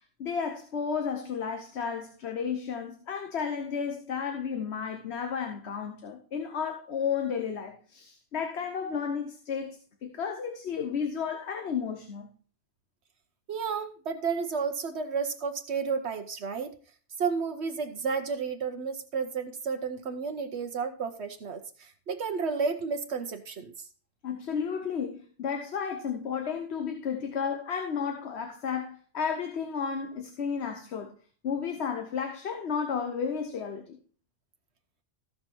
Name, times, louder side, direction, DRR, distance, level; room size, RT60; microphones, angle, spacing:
voice 1, 0.2-12.3 24.2-31.1 31.4-34.0, left 6 dB, 70° left, 1.2 m, -33 dB
voice 2, 13.5-16.7 17.2-23.9, right 5 dB, 70° right, 1.1 m, -32 dB
14.5 x 5.7 x 4.4 m
omnidirectional pair, 1.2 m